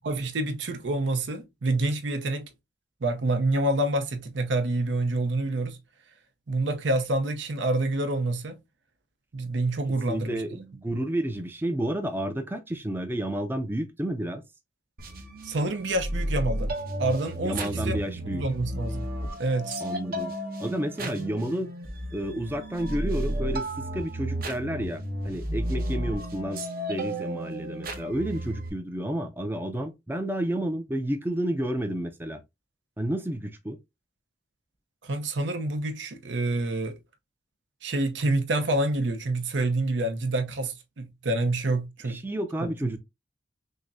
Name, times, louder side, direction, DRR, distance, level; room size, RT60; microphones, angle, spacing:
voice 1, 0.0-2.5 3.0-5.8 6.5-8.6 9.3-10.4 15.4-16.7 17.0-19.1 19.4-19.7 35.0-37.0 37.8-42.2 42.6-43.0, right 2 dB, 80° right, 0.7 m, -27 dB
voice 2, 10.1-14.4 17.4-18.4 19.8-20.3 20.6-21.7 22.1-32.4 33.0-33.8 42.0-43.0, right 1 dB, 10° right, 0.4 m, -31 dB
sound 1, 15.0-28.7, right 1 dB, 50° right, 0.9 m, -33 dB
6.2 x 2.1 x 2.6 m
head